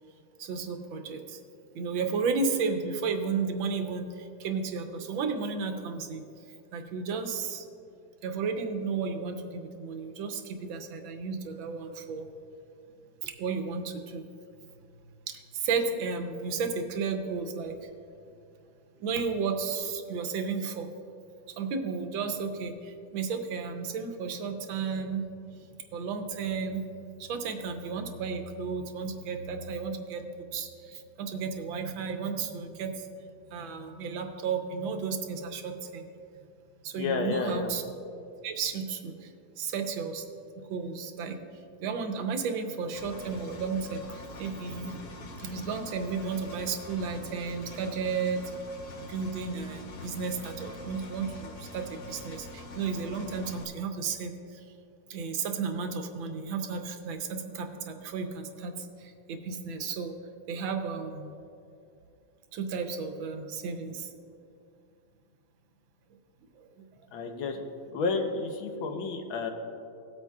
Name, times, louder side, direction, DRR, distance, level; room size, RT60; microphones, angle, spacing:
voice 1, 0.4-1.4 1.7-6.2 6.7-7.6 8.2-12.3 13.2-14.2 15.3-17.9 19.0-20.9 21.6-25.2 25.9-26.8 27.2-30.2 30.5-33.0 33.5-36.1 36.8-37.8 38.4-39.3 39.6-40.3 40.6-41.4 41.8-44.9 45.4-48.5 49.1-54.6 55.1-60.1 60.5-61.3 62.5-64.1 66.5-66.7 67.0-67.1, right 5 dB, 90° right, 5 dB, 1.6 m, -33 dB
voice 2, 37.0-37.7 67.1-67.6 67.9-69.5, left 4 dB, 90° left, 4 dB, 1.7 m, -31 dB
Engine, 42.9-53.7, left 2 dB, 55° left, 1.0 m, -45 dB
17.0 x 8.2 x 2.4 m, 2.6 s
omnidirectional pair, 2.1 m